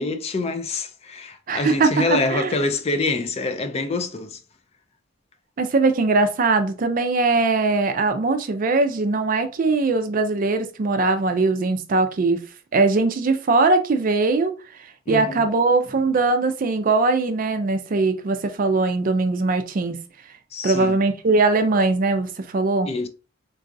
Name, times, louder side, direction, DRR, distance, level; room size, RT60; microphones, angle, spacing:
voice 1, 0.0-4.4 15.1-15.4 20.5-21.0 22.9-23.1, left 3 dB, 30° left, 0.3 m, -26 dB
voice 2, 1.5-2.5 5.6-12.4 12.7-14.5 15.1-20.0 20.6-22.9, right 3 dB, 45° right, 0.4 m, -21 dB
3.8 x 2.3 x 2.5 m
head